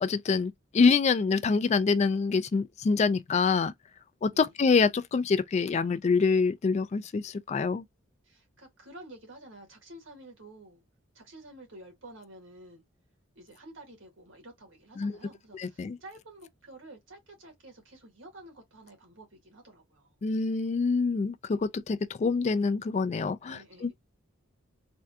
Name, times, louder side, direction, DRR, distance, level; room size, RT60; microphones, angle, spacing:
voice 1, 0.0-3.7 4.2-7.8 15.0-15.1 15.5-16.0 20.2-23.9, left 4 dB, 35° left, 0.3 m, -26 dB
voice 2, 8.2-10.8 11.1-12.8 13.3-20.1 23.4-23.9, right 1 dB, 75° right, 1.5 m, -50 dB
3.5 x 2.3 x 2.6 m
head